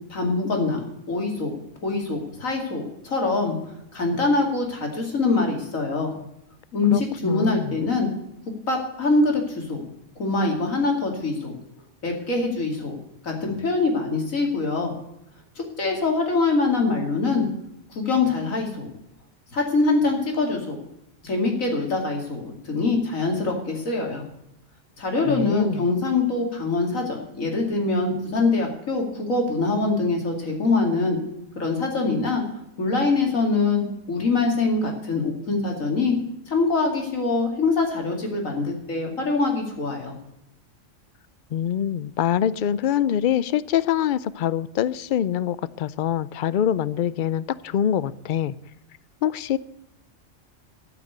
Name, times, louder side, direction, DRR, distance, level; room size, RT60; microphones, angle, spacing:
voice 1, 0.1-0.8 1.1-1.5 1.8-3.6 3.9-6.1 6.7-8.1 8.7-9.8 10.2-11.5 12.0-13.0 13.2-14.9 15.6-17.5 17.9-18.9 19.5-20.8 21.2-24.2 25.0-31.2 31.6-32.4 32.8-36.2 36.5-40.1, left 3 dB, 90° left, 2 dB, 2.9 m, -24 dB
voice 2, 6.9-7.8 25.3-25.9 41.5-48.6 49.2-49.6, left 10 dB, 70° left, 18 dB, 0.4 m, -24 dB
13.0 x 6.0 x 7.9 m, 0.86 s
omnidirectional pair, 1.4 m